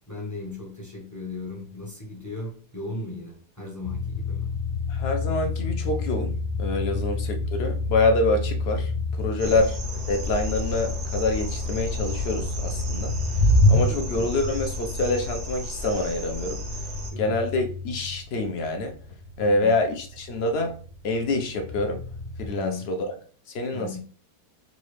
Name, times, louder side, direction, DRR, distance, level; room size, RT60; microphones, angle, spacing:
voice 1, 0.1-4.5 7.0-7.1 13.6-14.0 17.1-17.3 19.4-19.7 22.5-22.9 23.7-24.0, left 2 dB, 20° left, 0.6 m, -37 dB
sound 1, 3.8-22.5, left 2 dB, 90° left, 1.2 m, -29 dB
voice 2, 4.9-8.9 9.2-9.8 10.1-13.4 13.7-16.6 17.2-19.0 19.4-20.7 21.0-22.0 22.4-23.1 23.5-24.0, left 2 dB, 60° left, 0.7 m, -26 dB
sound 2, 9.4-17.1, left 2 dB, 85° right, 1.5 m, -33 dB
4.1 x 2.4 x 3.1 m
omnidirectional pair, 1.7 m